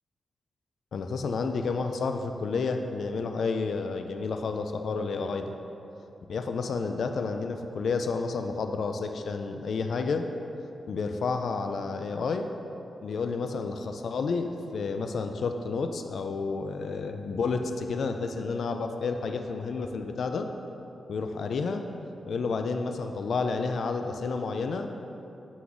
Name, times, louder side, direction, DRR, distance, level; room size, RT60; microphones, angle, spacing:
voice 1, 0.9-5.5 6.3-10.3 10.9-12.5 13.0-20.5 21.1-21.8 22.3-24.9, left 4 dB, 70° left, 6 dB, 0.3 m, -30 dB
5.9 x 3.9 x 6.1 m, 2.9 s
wide cardioid pair, 105°, 0 cm